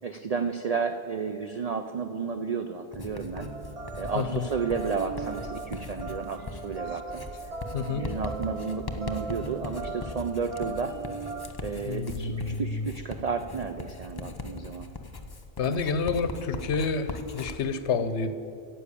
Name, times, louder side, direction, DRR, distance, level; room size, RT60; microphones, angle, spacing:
voice 1, 0.0-3.5 4.0-7.2 8.0-10.9 11.6-14.9 15.6-15.8, right 5 dB, 85° right, 7 dB, 0.3 m, -32 dB
Writing, 2.9-17.6, left 3 dB, 30° left, 0.5 m, -40 dB
sound 1, 3.4-11.5, right 4 dB, 35° right, 0.6 m, -39 dB
voice 2, 4.1-4.5 6.9-7.0 7.7-8.1 11.8-12.9 15.6-18.3, left 5 dB, 65° left, 11 dB, 0.9 m, -29 dB
10.0 x 7.6 x 8.4 m, 2.5 s
omnidirectional pair, 1.3 m